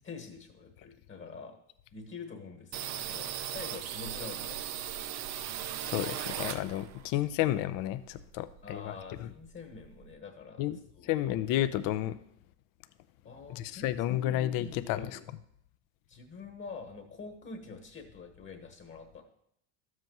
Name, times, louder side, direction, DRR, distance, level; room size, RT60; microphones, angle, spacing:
voice 1, 0.0-1.6 1.9-4.6 8.6-11.2 13.2-15.2 16.1-19.2, left 4 dB, 30° left, 4 dB, 1.3 m, -46 dB
sound 1, 2.7-7.1 7.4-8.8 9.1-9.2 9.4-10.2, right 10 dB, 45° right, 0.6 m, -38 dB
voice 2, 5.8-9.3 10.6-10.8 11.0-12.2 13.5-15.2, left 13 dB, 60° left, 12 dB, 0.6 m, -31 dB
12.5 x 7.6 x 3.0 m, 0.72 s
supercardioid pair, 110°, 37 cm